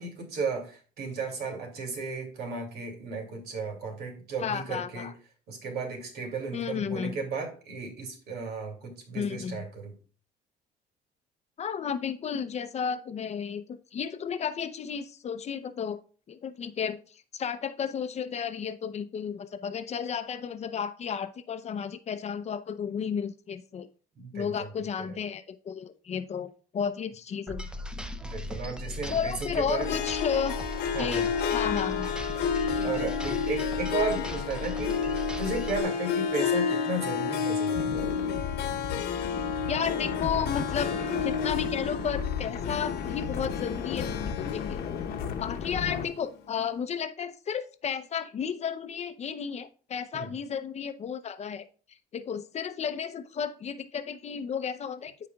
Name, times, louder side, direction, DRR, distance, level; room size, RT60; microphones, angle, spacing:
voice 1, 0.0-5.1 5.5-9.9 24.2-24.7 28.2-30.0 30.9-31.3 32.8-37.9 50.1-50.3, right 3 dB, 70° right, 2 dB, 2.6 m, -34 dB
voice 2, 4.4-5.1 6.5-7.2 9.1-9.6 11.6-16.0 16.3-23.9 24.3-27.7 29.1-30.5 31.0-32.1 32.8-32.9 39.7-40.9 41.2-44.8 45.4-55.1, left 7 dB, 40° left, 11 dB, 0.6 m, -33 dB
sound 1, 27.5-35.8, left 1 dB, 5° right, 0.6 m, -38 dB
Harp, 29.7-46.2, left 6 dB, 80° left, 1.2 m, -31 dB
sound 2, 37.7-46.0, left 7 dB, 65° left, 1.0 m, -34 dB
13.5 x 5.0 x 2.3 m, 0.39 s
cardioid pair, 110°, 17 cm